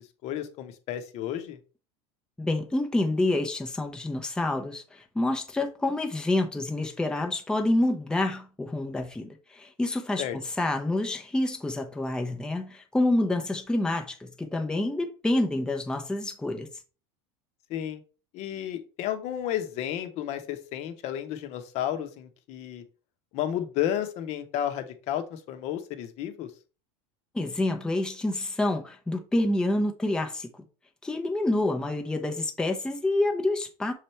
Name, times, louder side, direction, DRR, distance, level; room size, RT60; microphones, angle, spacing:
voice 1, 0.2-1.6 10.2-10.4 17.7-18.0 18.3-22.8 23.3-26.5, left 11 dB, 50° left, 0.9 m, -32 dB
voice 2, 2.4-10.3 10.6-16.7 27.3-30.5 31.0-33.9, left 2 dB, 5° left, 0.7 m, -27 dB
6.6 x 3.3 x 4.3 m
supercardioid pair, 145°, 14 cm